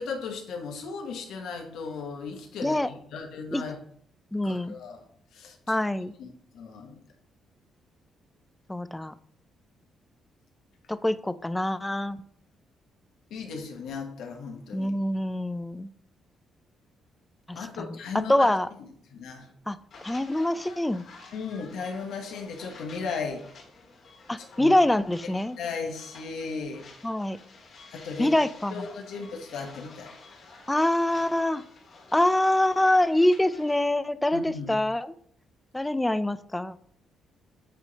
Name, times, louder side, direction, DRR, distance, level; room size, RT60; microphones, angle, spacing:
voice 1, 0.0-3.8 4.4-5.0 5.3-5.8 6.2-7.0 13.3-14.9 17.5-18.5 18.8-19.5 21.3-23.4 24.6-24.7 25.6-26.9 27.9-28.3 28.7-30.1 34.3-34.8, left 5 dB, 80° left, 3 dB, 1.2 m, -36 dB
voice 2, 4.3-4.7 5.7-6.1 8.7-9.1 10.9-12.2 14.7-15.9 17.5-17.9 18.3-18.7 19.7-19.8 20.0-21.0 24.3-25.6 27.0-27.4 28.2-28.9 30.7-31.6 32.1-35.1 35.7-36.8, left 1 dB, 10° left, 14 dB, 0.4 m, -25 dB
sound 1, 19.9-33.9, left 3 dB, 60° left, 2.1 m, -50 dB
8.2 x 3.2 x 4.0 m, 0.64 s
cardioid pair, 90°, 0 cm